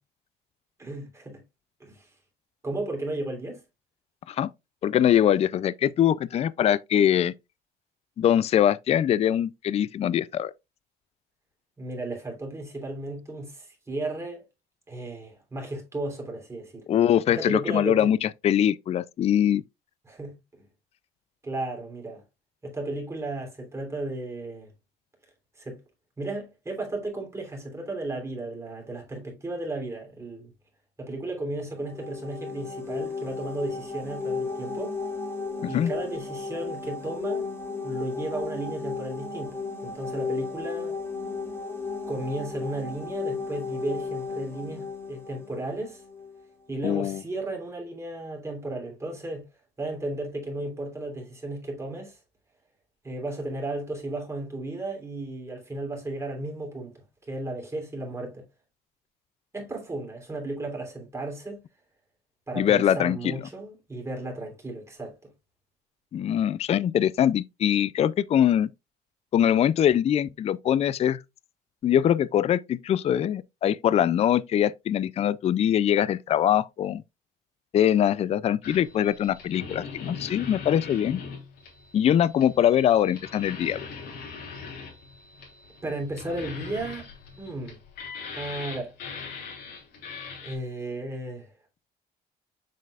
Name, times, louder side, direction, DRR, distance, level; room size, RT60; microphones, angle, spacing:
voice 1, 0.8-1.4 1.8-2.1 2.6-3.6 11.8-14.4 14.9-16.8 17.3-18.1 20.0-20.6 21.4-22.2 22.6-24.7 25.6-25.8 26.2-30.5 31.0-35.0 35.7-37.5 37.8-41.0 42.1-46.0 46.7-49.4 49.8-52.2 53.0-56.9 57.3-58.4 59.5-61.6 62.5-65.3 85.8-87.1 87.4-87.8 88.3-88.9 90.4-91.5, right 2 dB, 15° right, 3.1 m, -34 dB
voice 2, 4.8-7.3 8.2-10.5 16.9-19.6 35.6-35.9 46.8-47.2 62.6-63.2 66.1-68.7 69.3-71.2 71.8-77.0 77.7-81.2 81.9-83.9, left 10 dB, 40° left, 0.4 m, -23 dB
sound 1, 31.7-46.4, left 4 dB, 15° left, 3.0 m, -34 dB
sound 2, 78.6-90.5, left 5 dB, 70° left, 3.3 m, -41 dB
7.6 x 5.4 x 2.4 m
cardioid pair, 110°, 17 cm